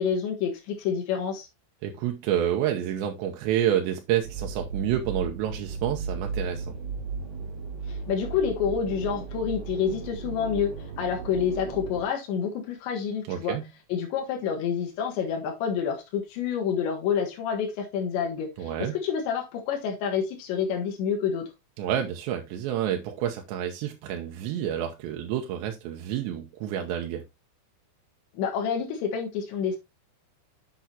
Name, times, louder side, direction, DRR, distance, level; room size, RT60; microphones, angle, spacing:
voice 1, 0.0-1.5 7.9-13.6 13.9-21.5 28.3-29.8, left 7 dB, 85° left, 3.9 m, -28 dB
voice 2, 1.8-6.8 13.3-13.6 18.6-18.9 21.8-27.2, right 10 dB, 85° right, 3.0 m, -29 dB
sound 1, 4.2-12.0, right 4 dB, 45° right, 2.5 m, -35 dB
8.1 x 7.3 x 2.8 m
omnidirectional pair, 5.0 m